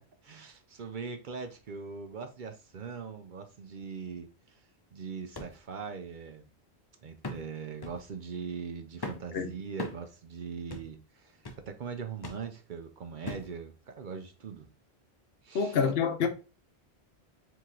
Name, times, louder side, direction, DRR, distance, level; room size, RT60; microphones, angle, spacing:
voice 1, 0.2-6.5 7.0-14.7 15.4-15.8, right 5 dB, 55° right, 0.6 m, -41 dB
sound 1, 5.3-5.6 6.0-6.1 7.2-7.5 7.8-8.1 9.0-9.3 9.8-10.1 10.7-10.9 11.4-11.7 12.2-12.5 13.3-13.5 14.2-14.3, left 2 dB, 30° left, 0.5 m, -40 dB
voice 2, 15.5-16.3, left 6 dB, 70° left, 0.9 m, -27 dB
4.6 x 2.8 x 3.7 m
omnidirectional pair, 1.1 m